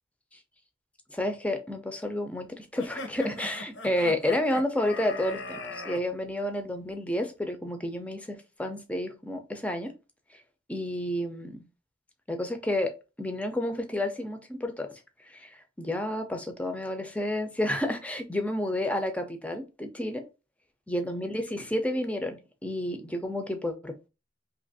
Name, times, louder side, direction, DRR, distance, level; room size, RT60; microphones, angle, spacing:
voice 1, 1.1-9.9 10.7-11.7 12.3-14.9 15.2-20.2 20.9-24.1, left 1 dB, 5° left, 0.5 m, -30 dB
sound 1, 2.8-6.0, left 2 dB, 80° left, 0.7 m, -39 dB
2.9 x 2.5 x 4.0 m
head